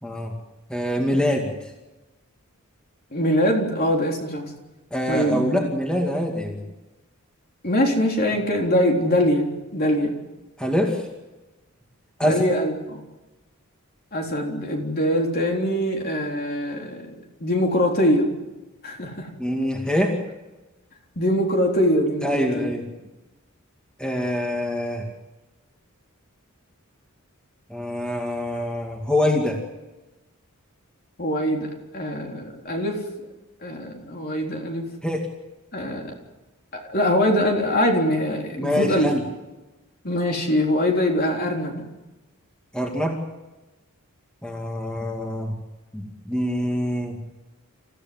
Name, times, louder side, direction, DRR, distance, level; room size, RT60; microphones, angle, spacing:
voice 1, 0.0-0.3 0.7-1.5 4.9-6.6 10.6-11.0 12.2-12.5 19.4-20.2 22.2-22.8 24.0-25.0 27.7-29.6 35.0-35.2 38.6-39.2 42.7-43.1 44.4-45.5 45.9-47.2, equal, 5° left, 1 dB, 2.3 m, -24 dB
voice 2, 3.1-4.5 5.1-5.7 7.6-10.2 12.2-13.0 14.1-18.3 18.8-19.3 21.2-22.7 31.2-33.0 33.6-34.9 35.7-36.1 36.7-39.1 40.0-41.9, equal, 45° left, 1 dB, 3.8 m, -23 dB
29.0 x 15.0 x 7.8 m, 1.1 s
head